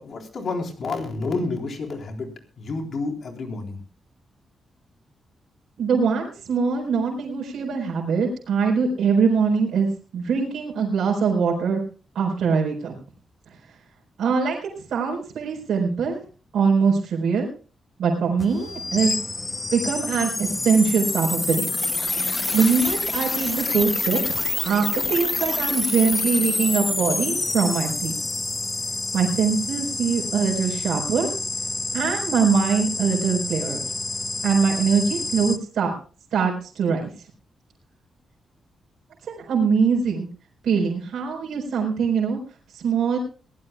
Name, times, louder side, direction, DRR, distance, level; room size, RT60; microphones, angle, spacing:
voice 1, 0.0-2.3 2.6-3.8, left 3 dB, 55° left, 2 dB, 3.9 m, -29 dB
voice 2, 5.8-9.9 10.1-11.8 12.1-12.9 13.5-13.6 14.2-16.2 16.5-17.5 18.0-19.1 19.7-21.7 22.5-28.1 29.1-31.3 31.9-33.8 34.4-35.9 36.3-37.2 39.2-40.3 40.6-42.4 42.7-43.2, right 5 dB, 85° right, -1 dB, 4.3 m, -22 dB
sound 1, 18.4-35.6, left 3 dB, 20° left, 0.7 m, -27 dB
22.0 x 16.5 x 2.3 m, 0.37 s
wide cardioid pair, 135°, 0 cm